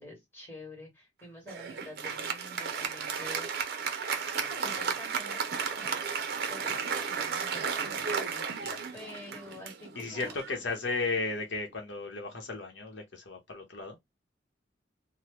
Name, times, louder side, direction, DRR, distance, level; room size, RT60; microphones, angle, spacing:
voice 1, 0.0-3.6 4.1-8.1 8.5-8.7 8.9-10.3, left 1 dB, 10° left, 1.6 m, -48 dB
Applause, 1.5-11.3, right 6 dB, 55° right, 0.6 m, -34 dB
voice 2, 10.0-14.0, left 3 dB, 70° left, 0.8 m, -35 dB
2.9 x 2.1 x 3.2 m
head